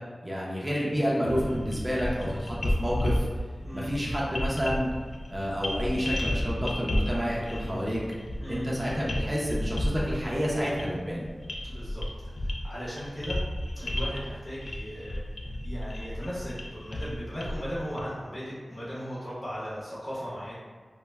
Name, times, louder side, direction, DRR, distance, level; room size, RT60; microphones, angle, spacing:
voice 1, 0.2-3.3 3.7-4.9 5.3-8.0 8.5-11.3, equal, 20° right, -5 dB, 0.5 m, -29 dB
sound 1, 1.2-18.0, left 1 dB, 70° left, 0.3 m, -33 dB
voice 2, 11.6-12.0 12.4-13.4 13.7-15.2 15.6-20.5, equal, 50° left, -9 dB, 0.8 m, -37 dB
2.1 x 2.1 x 3.3 m, 1.5 s
wide cardioid pair, 65°, 0 cm